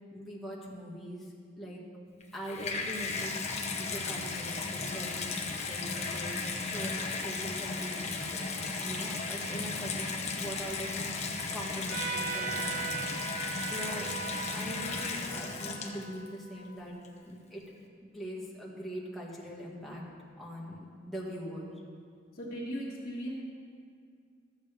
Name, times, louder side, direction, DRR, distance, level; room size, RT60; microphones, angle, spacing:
voice 1, 0.1-1.3 1.6-1.8 2.3-8.3 8.7-11.2 11.5-13.0 13.6-14.1 14.5-16.9 17.2-17.6 18.1-20.0 20.4-21.7, equal, ahead, -6 dB, 1.7 m, -42 dB
Water tap faucet / Bathtub (filling or washing), 2.2-16.3 17.0-17.1, left 4 dB, 35° left, 0.9 m, -35 dB
Trumpet, 11.9-17.0, right 6 dB, 70° right, 2.9 m, -39 dB
voice 2, 22.3-23.3, equal, 55° left, -9 dB, 1.7 m, -37 dB
13.5 x 8.0 x 3.4 m, 2.2 s
head